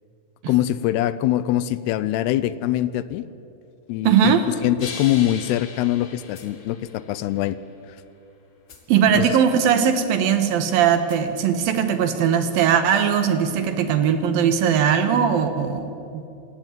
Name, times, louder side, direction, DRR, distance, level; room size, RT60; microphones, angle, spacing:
voice 1, 0.5-3.2 3.9-7.6 9.1-9.4, left 13 dB, 80° left, 16 dB, 2.6 m, -23 dB
voice 2, 4.0-4.4 8.9-16.3, right 8 dB, 70° right, 8 dB, 2.8 m, -19 dB
sound 1, 4.8-7.6 8.7-8.8 11.1-11.2 12.2-12.3, left 5 dB, 35° left, 2.6 m, -39 dB
27.0 x 16.5 x 9.1 m, 2.8 s
omnidirectional pair, 4.8 m